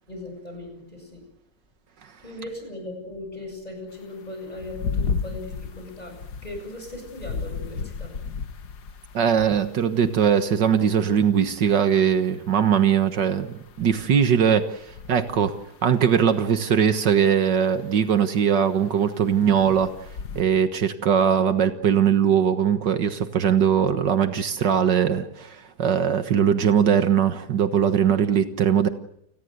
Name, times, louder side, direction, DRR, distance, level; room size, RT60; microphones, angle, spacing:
voice 1, 0.1-1.2 2.2-8.1, left 1 dB, 20° left, 4 dB, 8.1 m, -38 dB
sound 1, 4.4-11.2 11.4-11.8 12.9-15.9 16.3-20.4, left 5 dB, 65° left, 1.8 m, -35 dB
voice 2, 9.1-14.8 15.1-15.5 15.8-19.9 20.3-28.9, right 8 dB, 75° right, 9 dB, 2.0 m, -20 dB
29.5 x 20.0 x 8.0 m, 0.74 s
omnidirectional pair, 1.9 m